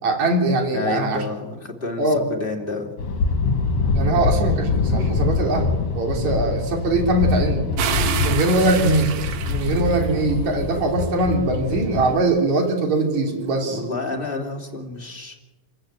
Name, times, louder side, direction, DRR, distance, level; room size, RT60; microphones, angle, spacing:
voice 1, 0.0-1.2 2.0-2.2 3.9-5.7 5.9-7.7 8.2-9.1 9.5-13.8, right 2 dB, 60° right, 3 dB, 4.5 m, -21 dB
voice 2, 0.7-2.9 13.7-15.4, left 3 dB, 15° left, 2 dB, 2.6 m, -30 dB
sound 1, 3.0-12.2, left 4 dB, 55° left, 2.9 m, -24 dB
sound 2, 7.8-10.4 11.0-13.9, right 8 dB, 90° right, 3.1 m, -31 dB
29.0 x 14.5 x 8.9 m, 1.1 s
omnidirectional pair, 3.7 m